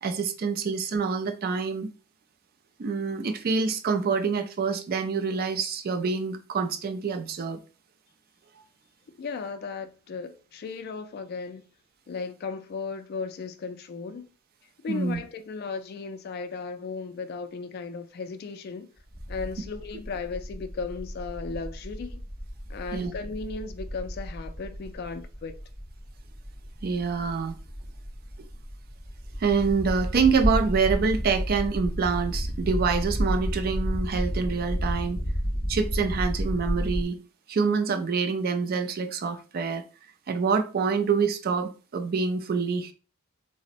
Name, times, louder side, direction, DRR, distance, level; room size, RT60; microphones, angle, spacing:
voice 1, 0.0-1.9 2.8-7.6 14.9-15.2 22.9-23.1 26.8-27.5 29.4-35.2 35.7-37.2 37.5-39.8 40.3-42.9, right 5 dB, 45° right, 0.4 m, -26 dB
voice 2, 9.1-11.6 12.1-14.3 14.8-18.9 19.3-22.2 22.7-25.6, left 4 dB, 45° left, 0.3 m, -36 dB
sound 1, 19.1-37.0, equal, ahead, 0.7 m, -31 dB
3.9 x 2.0 x 2.5 m
head